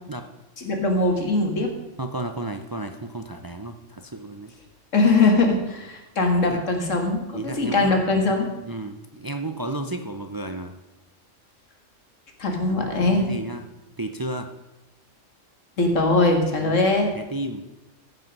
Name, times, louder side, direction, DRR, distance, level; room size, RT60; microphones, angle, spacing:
voice 1, 0.6-1.7 4.9-8.5 12.4-13.3 15.8-17.1, left 2 dB, 75° left, 3 dB, 2.0 m, -21 dB
voice 2, 2.0-4.5 6.5-6.6 7.3-7.9 8.6-10.8 12.7-12.9 13.1-13.6 14.0-14.5 16.6-16.8 17.1-17.6, right 2 dB, 40° right, 6 dB, 0.3 m, -33 dB
15.0 x 5.7 x 5.3 m, 0.99 s
omnidirectional pair, 1.3 m